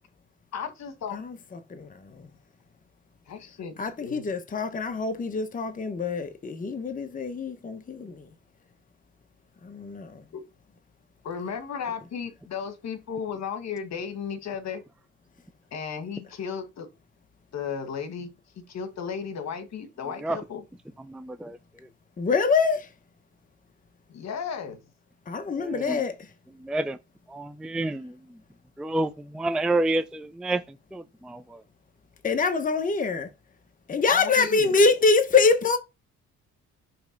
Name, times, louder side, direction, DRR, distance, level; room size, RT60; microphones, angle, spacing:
voice 1, 0.5-1.2 3.3-4.2 11.2-14.8 15.7-16.9 17.5-20.6 24.1-24.8 34.1-34.7, left 7 dB, 60° left, 1.5 m, -34 dB
voice 2, 1.1-1.9 3.8-8.2 9.6-10.2 22.2-22.9 25.3-26.1 32.2-33.3 33.9-35.8, left 4 dB, 25° left, 0.9 m, -24 dB
voice 3, 21.1-21.6 25.6-26.0 26.6-27.0 27.3-28.1 28.8-30.6 30.9-31.6, right 2 dB, 5° right, 0.3 m, -29 dB
6.0 x 3.2 x 5.1 m
cardioid pair, 90°, 30 cm